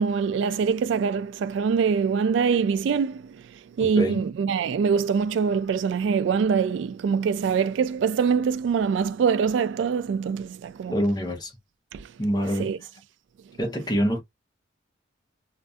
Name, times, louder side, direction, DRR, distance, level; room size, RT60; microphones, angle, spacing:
voice 1, 0.0-3.4 3.8-10.9 11.9-12.1 12.6-12.8, right 6 dB, 75° right, 0.3 m, -24 dB
voice 2, 3.8-4.2 10.9-11.5 12.2-12.7 13.6-14.2, equal, 20° left, 0.7 m, -25 dB
2.5 x 2.4 x 2.4 m
head